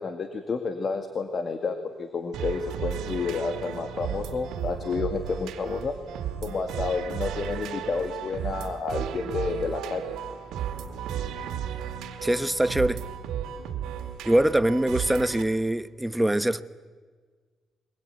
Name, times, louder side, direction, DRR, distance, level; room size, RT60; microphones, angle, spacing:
voice 1, 0.0-5.9 6.4-10.0, left 4 dB, 45° left, 2.1 m, -30 dB
sound 1, 2.3-15.4, right 9 dB, 85° right, 2.3 m, -34 dB
voice 2, 12.2-13.0 14.2-16.6, right 1 dB, 10° right, 1.0 m, -23 dB
24.0 x 21.0 x 9.2 m
cardioid pair, 90°, 0 cm